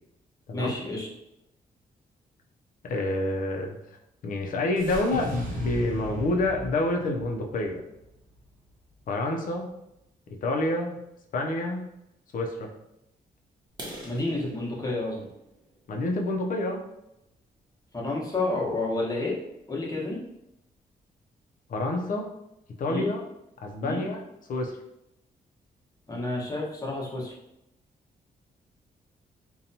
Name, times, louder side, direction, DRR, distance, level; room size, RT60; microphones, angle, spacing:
voice 1, 0.5-1.1 14.0-15.2 17.9-19.3 19.7-20.2 22.9-23.1 23.8-24.0 26.1-27.3, left 2 dB, 20° left, -4 dB, 1.0 m, -30 dB
voice 2, 2.8-3.8 4.2-7.8 9.1-9.7 10.4-11.0 11.3-11.8 12.3-12.7 15.9-16.8 21.7-22.3 22.8-23.2 23.6-24.2 24.5-24.7, left 2 dB, 55° left, 2 dB, 0.5 m, -28 dB
sound 1, 4.8-9.1, right 1 dB, 55° right, 0.7 m, -38 dB
sound 2, 13.7-17.4 18.0-18.2 18.6-18.7 19.1-19.3 19.6-19.7 20.2-20.3 20.5-21.0, right 1 dB, 25° right, 1.0 m, -46 dB
2.7 x 2.2 x 2.7 m, 0.86 s
cardioid pair, 70°, 16 cm